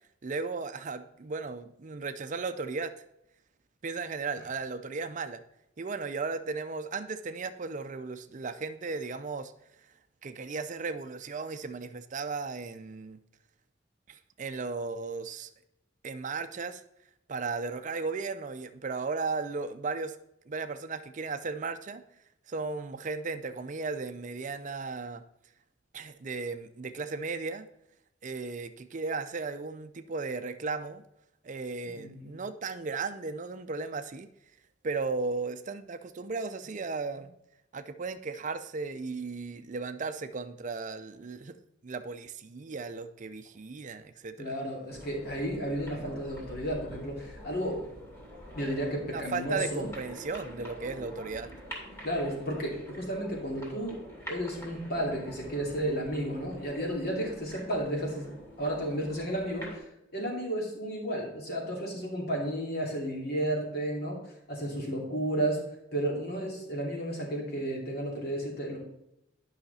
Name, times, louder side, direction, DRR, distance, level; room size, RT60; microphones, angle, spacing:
voice 1, 0.2-2.9 3.8-5.4 5.8-9.5 10.2-13.2 14.1-15.5 16.0-16.8 17.3-20.2 20.5-22.0 22.5-25.2 25.9-27.7 28.2-31.0 31.4-34.3 34.8-37.4 37.7-41.6 41.8-44.5 49.1-51.5, right 4 dB, 40° right, 9 dB, 0.5 m, -35 dB
voice 2, 31.8-32.4 44.4-47.8 48.6-49.9 52.0-54.0 54.3-58.3 58.6-59.9 60.1-64.2 64.5-65.6 65.9-68.8, right 1 dB, 55° left, -2 dB, 2.8 m, -32 dB
sound 1, 44.9-59.8, equal, 15° left, 2.6 m, -46 dB
10.5 x 5.7 x 4.1 m, 0.82 s
head